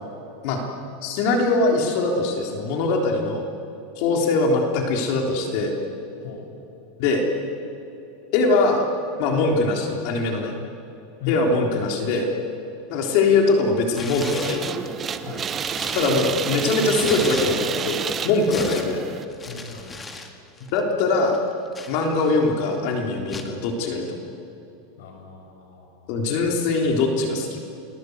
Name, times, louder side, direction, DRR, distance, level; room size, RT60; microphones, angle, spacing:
voice 1, 1.0-3.5 4.0-5.7 7.0-7.2 8.3-8.9 9.2-10.5 11.3-12.3 12.9-14.7 15.9-19.0 20.7-21.4 21.9-24.1 26.1-27.6, left 3 dB, 55° left, 2 dB, 3.7 m, -22 dB
Tearing, 13.9-14.7 15.2-17.9 18.2-20.3 20.6-20.8 21.3-22.5 23.3-23.6, left 3 dB, 15° left, 2.2 m, -37 dB
sound 1, 14.2-19.2, right 7 dB, 20° right, 1.2 m, -29 dB
voice 2, 19.5-20.0 25.0-26.3, left 8 dB, 80° left, 3 dB, 7.0 m, -38 dB
30.0 x 21.0 x 8.1 m, 2.9 s
supercardioid pair, 150°, 0 cm